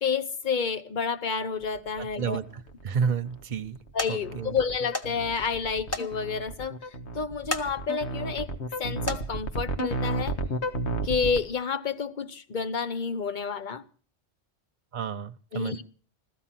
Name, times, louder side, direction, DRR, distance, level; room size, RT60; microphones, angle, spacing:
voice 1, 0.0-2.4 3.9-6.7 7.1-8.5 8.8-10.4 11.0-13.8 15.5-15.8, left 5 dB, 50° left, 1.0 m, -29 dB
sound 1, 1.6-11.4, right 1 dB, 85° left, 1.8 m, -33 dB
voice 2, 2.0-2.4 2.8-3.8 4.1-4.6 14.9-15.8, right 6 dB, 45° right, 1.0 m, -30 dB
sound 2, 2.5-3.0 3.5-3.7 4.0-4.1 4.9-5.1 5.4-5.5 5.9-6.1 6.5-6.6 7.3-7.7 8.2-8.4 8.9-9.2 10.2-10.3 10.8-10.9, left 2 dB, 15° left, 1.3 m, -32 dB
15.5 x 13.5 x 5.8 m
omnidirectional pair, 1.1 m